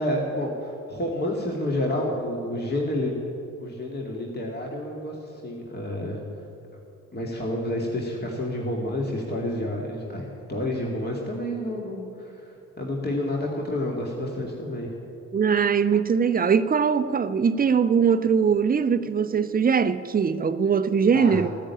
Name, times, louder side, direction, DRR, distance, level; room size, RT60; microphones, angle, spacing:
voice 1, 0.0-3.2 3.6-6.2 7.1-14.9 21.1-21.4, left 1 dB, 25° left, 2.5 m, -29 dB
voice 2, 15.3-21.5, right 6 dB, 20° right, 0.7 m, -21 dB
15.0 x 10.0 x 8.5 m
figure-of-eight pair, 45°, 40 cm